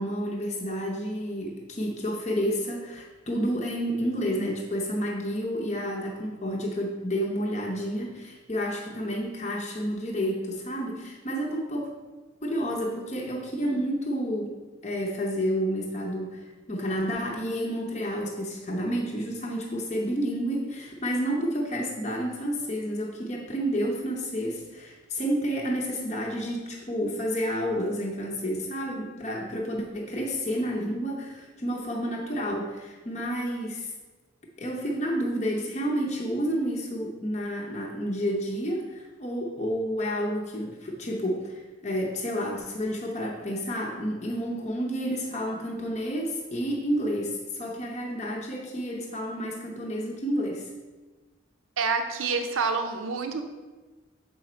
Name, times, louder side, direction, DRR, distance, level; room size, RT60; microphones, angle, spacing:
voice 1, 0.0-11.9 12.4-14.6 14.8-33.9 34.6-50.7, equal, 35° left, -1 dB, 0.7 m, -30 dB
voice 2, 51.8-53.4, right 4 dB, 85° right, 6 dB, 0.6 m, -27 dB
7.0 x 5.0 x 4.3 m, 1.2 s
head